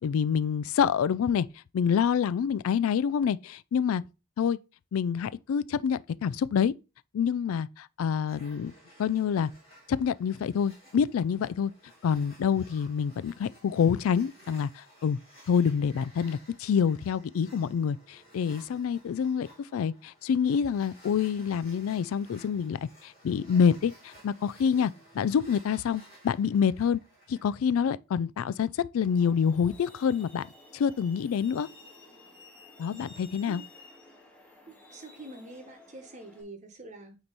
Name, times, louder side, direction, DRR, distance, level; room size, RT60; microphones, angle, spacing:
voice 1, 0.0-1.5 1.7-4.0 4.4-4.6 4.9-6.7 7.1-8.7 9.0-9.5 9.9-11.7 12.0-15.2 15.5-19.5 19.7-27.0 27.3-30.4 30.7-31.7 32.8-33.6, left 7 dB, 80° left, 0.3 m, -27 dB
sound 1, 8.3-27.6, equal, 30° left, 3.9 m, -56 dB
Truck, 29.0-36.4, left 2 dB, 5° left, 1.5 m, -53 dB
voice 2, 34.7-37.2, right 2 dB, 35° right, 1.1 m, -46 dB
8.6 x 3.0 x 4.0 m
head